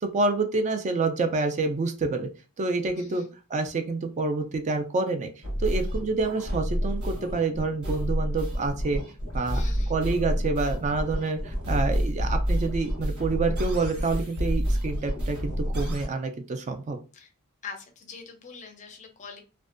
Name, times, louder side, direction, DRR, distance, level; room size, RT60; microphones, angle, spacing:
voice 1, 0.0-2.3 2.6-3.2 3.5-5.3 5.6-9.0 9.3-9.6 9.9-17.0, right 3 dB, 30° right, 7 dB, 0.3 m, -27 dB
voice 2, 2.9-3.3 9.5-10.0 17.1-17.3 17.6-19.4, left 5 dB, 35° left, 5 dB, 0.5 m, -43 dB
sound 1, 5.4-16.1, equal, 75° right, 1.1 m, -29 dB
2.5 x 2.2 x 2.4 m, 0.33 s
head